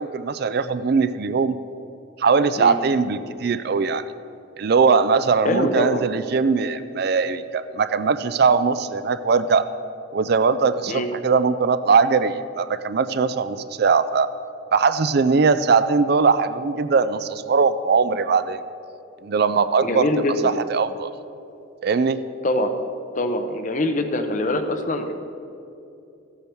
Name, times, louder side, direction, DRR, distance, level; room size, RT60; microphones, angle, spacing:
voice 1, 0.0-1.6 2.2-4.1 4.6-9.7 10.1-14.3 14.7-18.6 19.2-20.1 20.4-21.1 21.8-22.2, right 5 dB, 50° right, 13 dB, 0.4 m, -20 dB
voice 2, 5.4-6.0 10.9-11.1 19.8-20.6 22.4-22.7 23.1-25.1, left 1 dB, 40° left, 7 dB, 0.7 m, -23 dB
14.5 x 8.5 x 4.5 m, 2.8 s
head